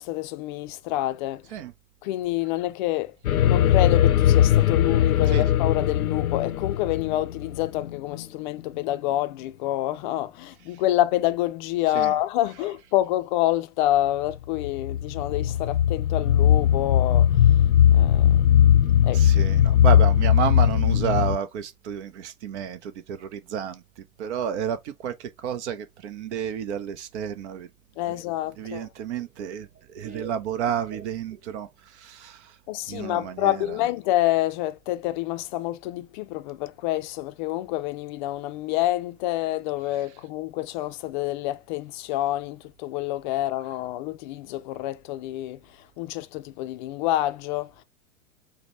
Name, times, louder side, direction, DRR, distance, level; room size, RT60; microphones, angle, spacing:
voice 1, 0.0-1.6 2.0-3.2 3.4-17.5 17.9-18.4 19.0-19.2 28.0-28.9 32.7-47.8, left 15 dB, 35° left, 0.5 m, -27 dB
sound 1, 3.2-8.2 14.3-21.4, left 10 dB, 80° left, 0.6 m, -19 dB
voice 2, 19.1-27.7 28.6-32.6 32.9-33.8, right 8 dB, 55° right, 0.8 m, -31 dB
Laughter, 28.1-31.7, right 6 dB, 20° right, 1.2 m, -47 dB
5.0 x 2.2 x 4.1 m
hypercardioid pair, 105°, 43 cm